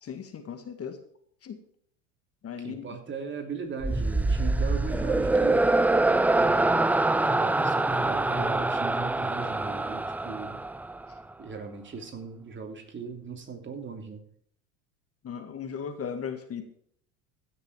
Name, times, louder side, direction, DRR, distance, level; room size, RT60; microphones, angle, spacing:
voice 1, 0.0-1.0 1.4-1.6 2.4-2.9 15.2-16.7, left 7 dB, 35° left, 7 dB, 1.8 m, -37 dB
voice 2, 2.6-5.7 6.3-6.9 7.2-10.6 11.4-14.2, right 5 dB, 30° right, 4 dB, 3.0 m, -39 dB
sound 1, 3.8-11.2, right 2 dB, 5° right, 0.4 m, -25 dB
15.5 x 6.9 x 4.8 m, 0.64 s
hypercardioid pair, 80°, 40 cm